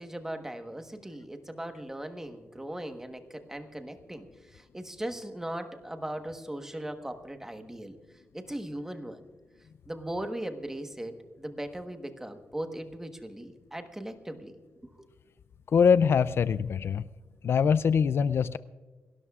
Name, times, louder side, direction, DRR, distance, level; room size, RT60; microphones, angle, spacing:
voice 1, 0.0-8.0 8.3-9.2 9.9-15.1, right 1 dB, 10° right, 7 dB, 1.2 m, -39 dB
voice 2, 15.7-17.0 17.4-18.6, left 6 dB, 60° left, 16 dB, 0.4 m, -23 dB
28.5 x 13.0 x 2.4 m, 1.4 s
wide cardioid pair, 120°, 5 cm